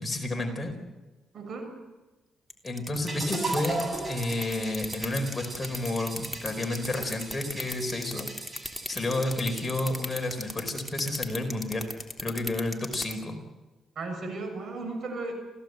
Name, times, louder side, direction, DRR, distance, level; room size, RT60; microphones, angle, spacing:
voice 1, 0.0-0.8 2.6-8.3 8.9-11.9 12.2-13.4, left 2 dB, 20° left, 4 dB, 4.5 m, -31 dB
voice 2, 1.3-1.7 13.9-15.3, right 3 dB, 55° right, 5 dB, 6.7 m, -35 dB
sound 1, 2.5-13.1, equal, 5° right, 3.5 m, -34 dB
sound 2, 3.1-11.1, right 2 dB, 30° right, 7.6 m, -38 dB
27.5 x 16.0 x 8.1 m, 1.1 s
cardioid pair, 90°, 0 cm